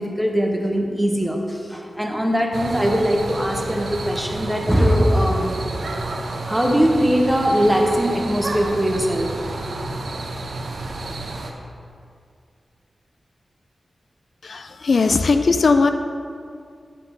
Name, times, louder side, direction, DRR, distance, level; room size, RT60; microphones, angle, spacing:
voice 1, 0.0-5.6 6.3-9.4, equal, 5° right, 1 dB, 0.9 m, -21 dB
sound 1, 2.5-11.5, right 2 dB, 75° right, 0.8 m, -30 dB
voice 2, 14.4-15.9, left 4 dB, 65° left, 7 dB, 0.3 m, -18 dB
9.9 x 3.7 x 5.6 m, 2.3 s
wide cardioid pair, 85°, 0 cm